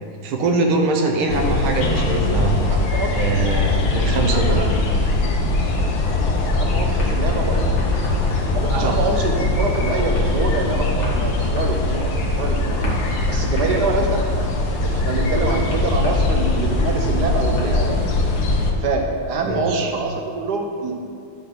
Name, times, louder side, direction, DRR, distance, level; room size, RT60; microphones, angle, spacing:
voice 1, 0.2-2.5 3.2-4.6 8.8-9.0 19.4-19.9, right 2 dB, 80° right, 2 dB, 1.7 m, -22 dB
sound 1, 1.3-18.7, left 2 dB, 85° left, 1.9 m, -21 dB
voice 2, 2.6-3.1 4.2-4.7 6.3-7.8 8.5-12.9 13.3-14.2 14.8-18.2 18.8-20.9, right 3 dB, 65° right, 2 dB, 1.2 m, -25 dB
sound 2, 7.0-18.4, left 2 dB, 35° left, 1.6 m, -37 dB
11.0 x 3.8 x 5.9 m, 2.3 s
omnidirectional pair, 2.3 m